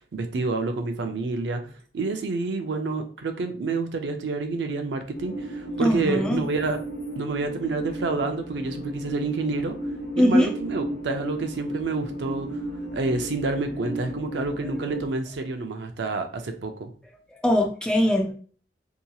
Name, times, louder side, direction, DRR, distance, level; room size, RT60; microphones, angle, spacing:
voice 1, 0.0-1.6 1.9-6.8 7.2-9.8 10.2-12.5 12.9-16.9, right 3 dB, 80° right, 6 dB, 0.4 m, -28 dB
sound 1, 5.1-15.1, right 1 dB, 60° left, 1.0 m, -34 dB
voice 2, 5.8-6.5 10.2-10.5 17.3-18.3, equal, 5° left, 2 dB, 0.4 m, -21 dB
2.8 x 2.7 x 2.3 m, 0.42 s
head